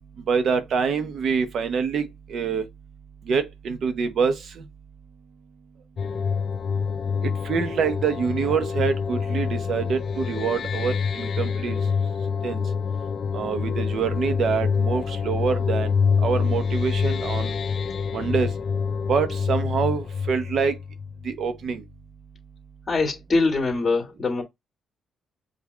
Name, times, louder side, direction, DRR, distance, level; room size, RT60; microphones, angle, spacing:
voice 1, 0.3-2.6 3.3-4.6 7.4-11.8 12.4-12.6 13.3-15.9 16.2-17.6 18.1-18.5 19.1-20.8 21.2-21.8, right 6 dB, 60° right, 0.9 m, -25 dB
sound 1, 6.0-21.4, left 5 dB, 50° left, 0.4 m, -26 dB
voice 2, 22.9-24.4, left 3 dB, 30° left, 1.8 m, -23 dB
5.0 x 2.6 x 3.3 m
cardioid pair, 90°, 0 cm